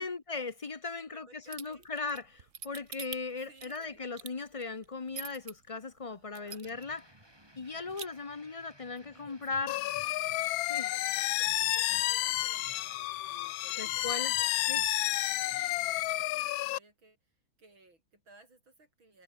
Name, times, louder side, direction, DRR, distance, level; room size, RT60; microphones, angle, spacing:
voice 1, 0.0-7.0 7.6-9.8 10.7-10.9 13.8-14.4 14.7-14.8, left 4 dB, 40° left, 0.4 m, -38 dB
voice 2, 1.1-1.9 3.4-4.1 6.1-6.7 9.1-10.1 10.9-14.9 15.4-17.3 17.6-19.2, right 2 dB, 80° right, 7.9 m, -59 dB
sound 1, 1.5-5.5 6.0-6.1 6.4-7.0 7.3-7.4 7.7-8.1, right 7 dB, 45° right, 1.3 m, -44 dB
sound 2, 6.6-16.2, right 1 dB, 10° right, 5.1 m, -59 dB
sound 3, 9.7-16.8, left 17 dB, 80° left, 1.4 m, -31 dB
omnidirectional pair, 2.2 m